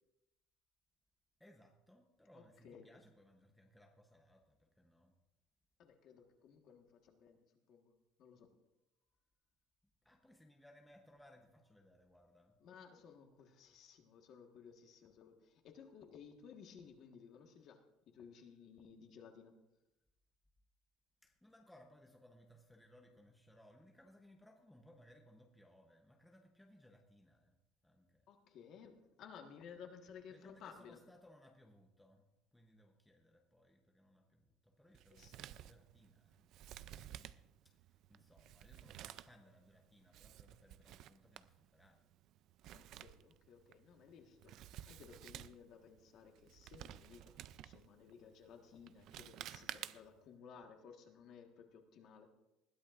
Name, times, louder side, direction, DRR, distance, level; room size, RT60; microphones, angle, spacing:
voice 1, 1.4-5.1 10.0-12.6 21.2-27.6 27.8-28.3 30.3-37.4 37.6-42.0, equal, 5° left, 2 dB, 0.8 m, -65 dB
voice 2, 2.3-2.9 5.8-7.9 8.2-8.5 12.6-19.5 28.3-31.0 35.1-35.4 42.7-44.5 44.9-52.3, left 7 dB, 40° left, 4 dB, 1.4 m, -57 dB
Male speech man speaking, 34.9-50.3, right 12 dB, 45° right, 0.4 m, -54 dB
20.0 x 13.5 x 2.5 m, 0.94 s
cardioid pair, 175°, 0 cm